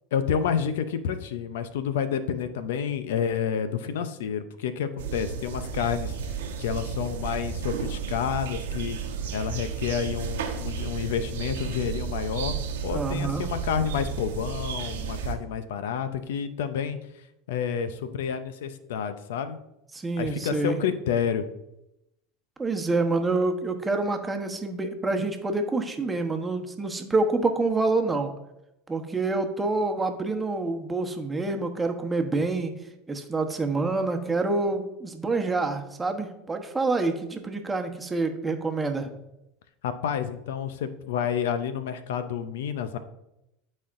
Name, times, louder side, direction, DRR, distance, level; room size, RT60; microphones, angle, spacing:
voice 1, 0.1-9.0 9.3-12.5 12.8-17.0 17.5-19.6 20.2-21.5 39.8-43.0, left 7 dB, 80° left, 11 dB, 0.6 m, -29 dB
sound 1, 5.0-15.3, right 6 dB, 90° right, 1.0 m, -33 dB
voice 2, 12.9-13.5 19.9-20.8 22.6-28.3 28.9-32.7 33.1-39.1, right 3 dB, 15° right, 5 dB, 1.0 m, -27 dB
12.5 x 4.2 x 2.5 m, 0.87 s
supercardioid pair, 105°, 0 cm